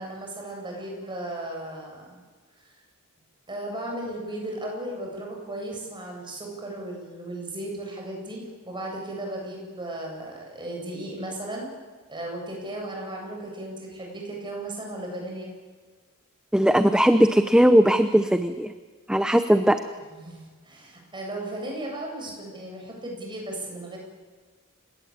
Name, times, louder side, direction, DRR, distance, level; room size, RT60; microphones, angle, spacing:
voice 1, 0.0-2.2 2.6-2.7 3.5-11.7 12.1-15.5 20.1-24.0, right 1 dB, 20° right, 0 dB, 7.9 m, -35 dB
voice 2, 16.5-18.7 19.1-19.8, equal, 5° right, 9 dB, 0.8 m, -19 dB
29.0 x 18.0 x 8.8 m, 1.4 s
head